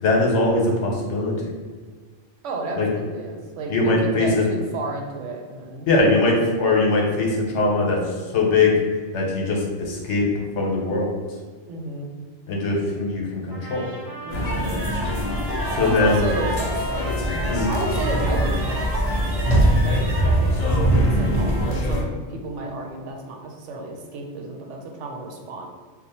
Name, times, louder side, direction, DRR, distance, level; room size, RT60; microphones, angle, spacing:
voice 1, 0.0-1.3 2.8-2.9 3.7-4.4 5.9-8.0 8.3-8.7 9.1-10.3 10.5-11.1 12.5-13.8 15.7-16.3 17.5-17.7, left 2 dB, 75° left, -2 dB, 1.1 m, -21 dB
voice 2, 2.4-6.1 11.7-12.1 14.2-14.7 15.8-16.9 17.7-18.9 19.1-25.7, right 2 dB, 80° right, 1 dB, 1.0 m, -32 dB
sound 1, 13.5-21.9, right 1 dB, 35° right, 0.3 m, -38 dB
sound 2, 14.3-22.0, equal, 55° left, 0.4 m, -22 dB
sound 3, 14.5-20.2, right 1 dB, 60° right, 0.7 m, -33 dB
2.8 x 2.2 x 4.1 m, 1.5 s
omnidirectional pair, 1.2 m